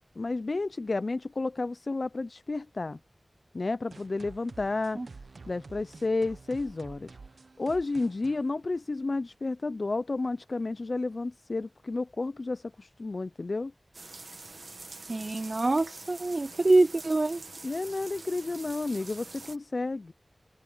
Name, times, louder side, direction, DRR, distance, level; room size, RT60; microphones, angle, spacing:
voice 1, 0.0-3.0 3.5-5.0 5.5-7.2 7.6-13.7 17.6-20.1, left 3 dB, 60° left, 0.3 m, -31 dB
sound 1, 3.9-9.4, right 4 dB, 85° right, 0.8 m, -50 dB
sound 2, 13.9-19.6, right 3 dB, 65° right, 1.6 m, -45 dB
voice 2, 15.1-17.4, right 2 dB, 45° right, 0.4 m, -25 dB
open air
wide cardioid pair, 65°, 0 cm